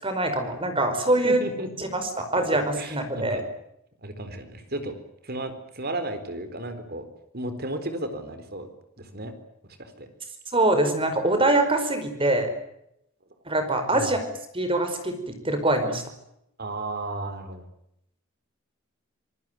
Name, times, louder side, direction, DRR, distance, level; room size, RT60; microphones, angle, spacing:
voice 1, 0.0-1.4 1.8-3.4 10.5-12.5 13.5-14.2 14.5-16.0, right 2 dB, 25° right, 8 dB, 5.1 m, -24 dB
voice 2, 1.2-1.7 2.8-3.4 4.0-5.0 5.2-7.1 7.3-8.7 9.0-9.3 9.8-10.1 13.9-14.1 16.6-17.7, right 1 dB, 45° right, 9 dB, 4.2 m, -33 dB
26.5 x 19.5 x 9.3 m, 0.78 s
head